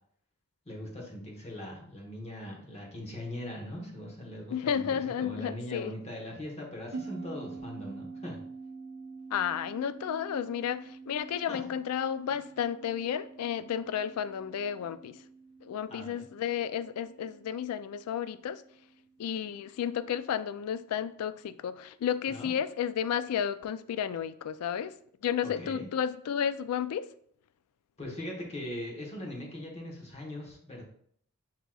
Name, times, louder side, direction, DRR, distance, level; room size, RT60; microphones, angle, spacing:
voice 1, 0.7-8.4 11.5-11.7 15.9-16.2 22.3-22.5 25.6-25.9 28.0-30.8, left 1 dB, 30° left, -1 dB, 1.1 m, -40 dB
voice 2, 4.5-5.9 9.3-15.2 15.6-18.6 19.2-24.9 25.2-27.1, left 8 dB, 75° left, 15 dB, 0.3 m, -32 dB
sound 1, 6.9-19.7, right 4 dB, 50° right, 0.5 m, -47 dB
7.9 x 2.9 x 2.3 m, 0.63 s
head